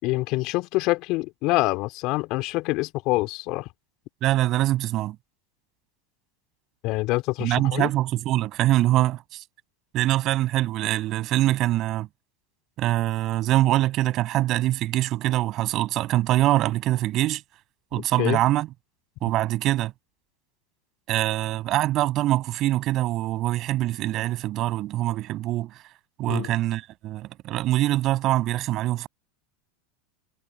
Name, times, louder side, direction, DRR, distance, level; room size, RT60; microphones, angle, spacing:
voice 1, 0.0-3.7 6.8-7.9 18.0-18.4 26.3-26.5, left 21 dB, 55° left, 3.1 m, -26 dB
voice 2, 4.2-5.2 7.4-9.4 9.9-12.1 12.8-17.4 17.9-18.7 19.2-19.9 21.1-25.8 26.2-29.1, right 15 dB, 50° right, 6.9 m, -24 dB
hypercardioid pair, 85°, 0 cm